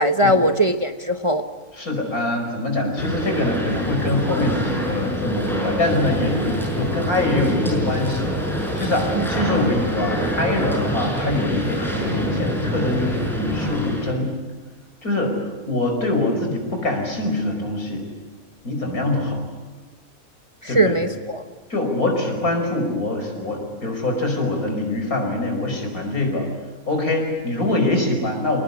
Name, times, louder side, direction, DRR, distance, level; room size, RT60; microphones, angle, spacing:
voice 1, 0.0-1.4 9.1-9.3 20.6-21.4, right 1 dB, 25° right, 6 dB, 1.0 m, -20 dB
voice 2, 1.8-14.3 15.0-15.4 15.7-18.0 18.6-19.4 20.7-20.9 21.7-26.5 26.9-28.6, left 2 dB, 80° left, 3 dB, 5.8 m, -24 dB
sound 1, 3.0-14.1, equal, ahead, 5.9 m, -25 dB
27.0 x 19.0 x 9.8 m, 1.3 s
omnidirectional pair, 1.5 m